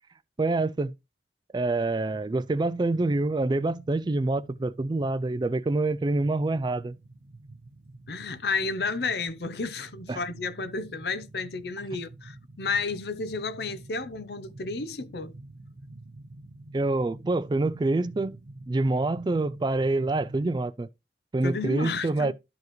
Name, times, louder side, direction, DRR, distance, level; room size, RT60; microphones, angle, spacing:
voice 1, 0.4-0.9 1.5-6.9 10.1-10.2 16.7-18.4 18.7-20.9 21.3-22.3, right 2 dB, 25° right, 0.3 m, -26 dB
sound 1, 1.9-20.6, right 2 dB, 70° right, 0.8 m, -48 dB
voice 2, 8.1-15.3 21.4-22.3, left 4 dB, 65° left, 0.7 m, -32 dB
12.0 x 4.7 x 3.1 m
head